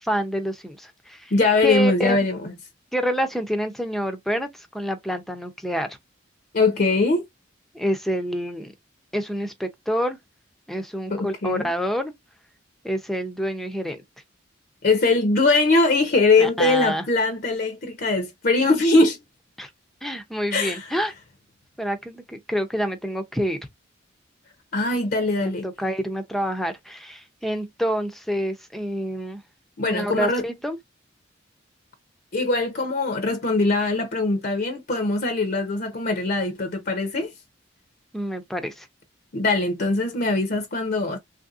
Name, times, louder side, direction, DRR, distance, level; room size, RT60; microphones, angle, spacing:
voice 1, 0.0-1.3 1.6-2.2 2.9-6.0 7.7-8.7 9.1-10.2 10.7-12.1 12.8-14.0 16.4-17.1 19.6-19.7 20.0-21.1 21.8-23.6 25.4-29.4 29.8-30.8 38.1-38.9, equal, ahead, 0.5 m, -27 dB
voice 2, 1.3-2.5 6.5-7.2 11.1-11.7 14.8-19.2 20.5-20.9 24.7-25.7 29.8-30.4 32.3-37.3 39.3-41.2, left 3 dB, 50° left, 0.6 m, -21 dB
3.3 x 2.6 x 2.4 m
head